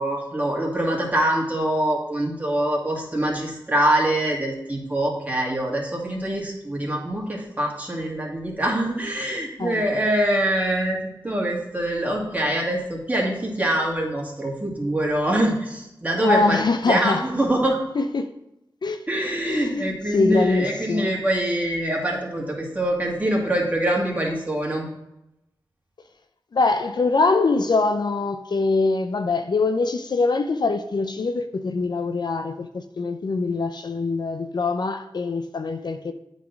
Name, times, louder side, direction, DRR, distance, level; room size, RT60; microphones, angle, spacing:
voice 1, 0.0-17.8 19.1-24.8, right 1 dB, 20° right, 2.2 m, -24 dB
voice 2, 16.2-17.2 18.0-18.3 18.8-19.1 19.5-19.8 20.1-21.1 26.5-36.1, left 3 dB, 60° left, 0.5 m, -23 dB
8.4 x 4.2 x 5.9 m
cardioid pair, 55°, 8 cm